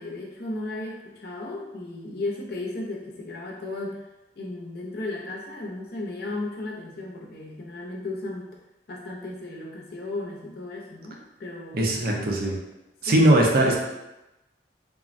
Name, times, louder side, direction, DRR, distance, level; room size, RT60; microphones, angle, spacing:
voice 1, 0.0-4.0 4.4-8.6 8.9-12.4 13.1-13.3, left 2 dB, 60° left, -2 dB, 0.6 m, -35 dB
voice 2, 11.7-12.5 13.0-13.8, right 1 dB, 55° right, 0 dB, 0.5 m, -20 dB
3.6 x 2.1 x 2.5 m, 0.97 s
head